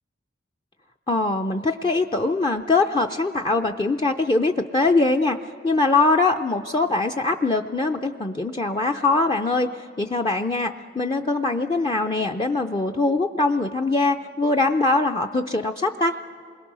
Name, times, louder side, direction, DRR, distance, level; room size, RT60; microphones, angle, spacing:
voice 1, 1.1-5.4 5.6-16.2, left 3 dB, 25° left, 4 dB, 0.5 m, -22 dB
28.0 x 21.5 x 6.1 m, 2.4 s
head